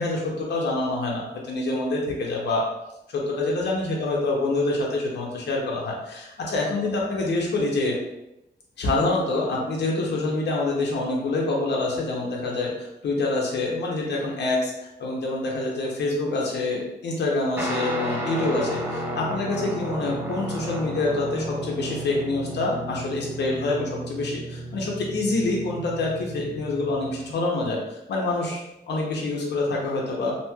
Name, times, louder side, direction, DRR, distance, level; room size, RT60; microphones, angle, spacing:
voice 1, 0.0-2.7 3.1-8.0 8.8-14.7 15.0-30.4, left 2 dB, 70° left, -2 dB, 0.7 m, -26 dB
Guitar, 17.6-27.3, equal, 10° right, 0.4 m, -33 dB
3.0 x 2.7 x 2.2 m, 0.89 s
wide cardioid pair, 175°, 18 cm